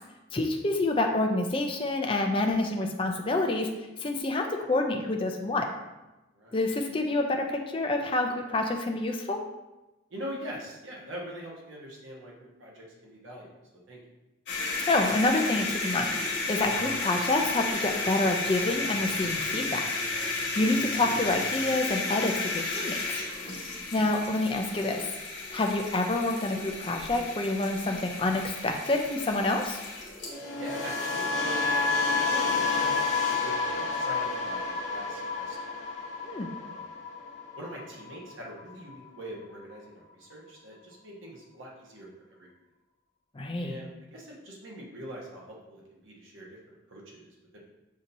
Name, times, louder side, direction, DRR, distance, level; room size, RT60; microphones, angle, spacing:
voice 1, 0.3-3.7 4.0-5.7 6.5-9.4 14.9-19.8 20.2-23.0 23.9-25.1 25.4-29.8 36.2-36.5 43.4-43.8, left 2 dB, 25° left, 3 dB, 0.4 m, -28 dB
voice 2, 10.1-13.5 13.9-14.0 30.6-35.7 36.5-37.0 37.6-42.1 42.4-42.5 43.6-47.6, equal, 80° right, -3 dB, 1.1 m, -43 dB
sound 1, 14.5-30.3, left 3 dB, 55° left, 1.4 m, -33 dB
sound 2, 16.7-21.6, right 2 dB, 55° right, 0.8 m, -48 dB
sound 3, 30.2-38.3 38.6-38.9, left 4 dB, 75° left, 0.9 m, -30 dB
7.3 x 2.8 x 2.6 m, 1.0 s
head